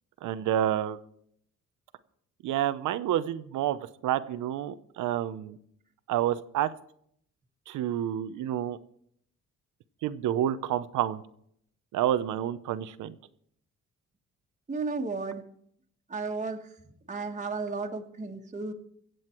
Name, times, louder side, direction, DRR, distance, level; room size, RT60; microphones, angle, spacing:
voice 1, 0.2-1.0 2.4-5.6 6.1-6.7 7.7-8.8 10.0-11.2 11.9-13.2, right 11 dB, 80° right, 14 dB, 0.9 m, -29 dB
voice 2, 14.7-15.4 16.1-16.7 17.1-18.7, right 4 dB, 25° right, 1 dB, 1.6 m, -33 dB
23.5 x 8.0 x 4.5 m, 0.69 s
cardioid pair, 90°, 30 cm